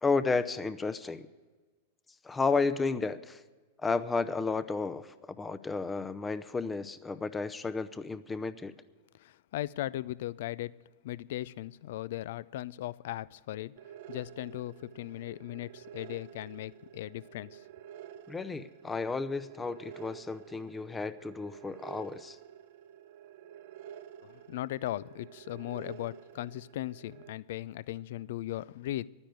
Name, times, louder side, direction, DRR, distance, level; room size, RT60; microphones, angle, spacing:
voice 1, 0.0-1.3 2.2-3.4 3.8-8.7 18.3-22.4, left 4 dB, 15° left, 0.6 m, -32 dB
voice 2, 9.1-10.7 11.0-13.7 14.1-17.6 24.2-29.1, left 14 dB, 60° left, 0.4 m, -38 dB
sound 1, 13.8-27.3, right 10 dB, 60° right, 0.7 m, -50 dB
11.5 x 9.8 x 9.1 m
figure-of-eight pair, 100°, 0 cm